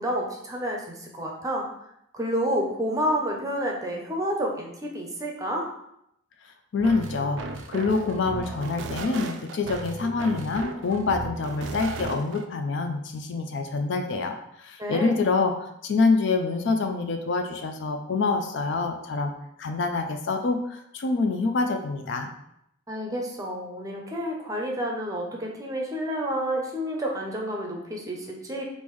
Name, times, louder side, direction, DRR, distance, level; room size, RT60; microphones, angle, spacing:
voice 1, 0.0-1.7 2.1-5.7 14.8-15.2 22.9-28.6, equal, 20° right, 0 dB, 0.5 m, -29 dB
voice 2, 6.7-7.4 7.7-15.5 15.8-19.3 19.6-22.3, left 3 dB, 65° left, 6 dB, 0.4 m, -26 dB
sound 1, 6.8-12.4, right 3 dB, 70° right, 0.3 m, -36 dB
3.6 x 2.6 x 3.0 m, 0.77 s
head